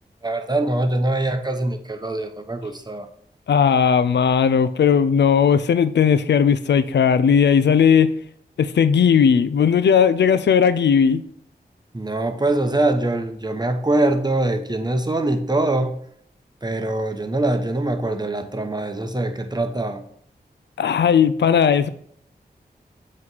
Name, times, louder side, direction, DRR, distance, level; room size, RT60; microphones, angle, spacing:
voice 1, 0.2-3.1 11.9-15.9 16.6-20.0, right 2 dB, 25° right, 0.9 m, -23 dB
voice 2, 3.5-8.1 8.6-11.2 20.8-21.9, left 7 dB, 85° left, 0.4 m, -17 dB
7.6 x 3.1 x 5.7 m
cardioid pair, 50°, 18 cm